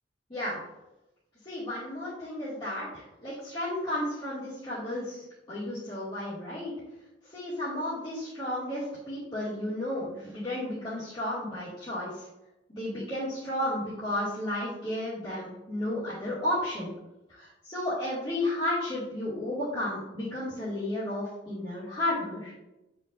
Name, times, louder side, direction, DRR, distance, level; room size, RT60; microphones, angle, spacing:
voice 1, 0.3-0.6 1.4-6.7 7.3-12.3 12.7-16.9 17.3-22.5, left 1 dB, 25° left, -13 dB, 2.4 m, -33 dB
8.7 x 5.5 x 2.7 m, 0.94 s
head